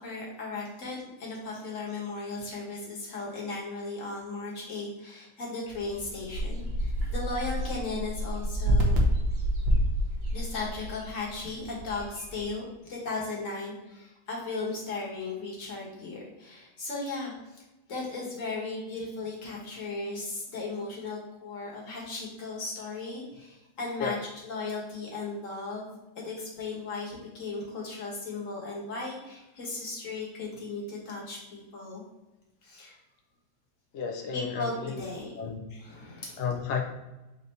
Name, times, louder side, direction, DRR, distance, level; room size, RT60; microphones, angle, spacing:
voice 1, 0.0-9.0 10.3-12.6 12.9-17.6 17.9-24.2 24.4-25.9 26.1-32.0 32.6-33.0 34.3-35.3 35.7-36.4, left 3 dB, 50° left, -3 dB, 1.5 m, -36 dB
sound 1, 5.7-12.5, equal, 60° right, 0.6 m, -29 dB
voice 2, 33.9-35.0 35.4-35.6 36.4-36.8, left 6 dB, 85° left, 2 dB, 0.6 m, -32 dB
4.2 x 2.7 x 4.2 m, 1.0 s
omnidirectional pair, 2.0 m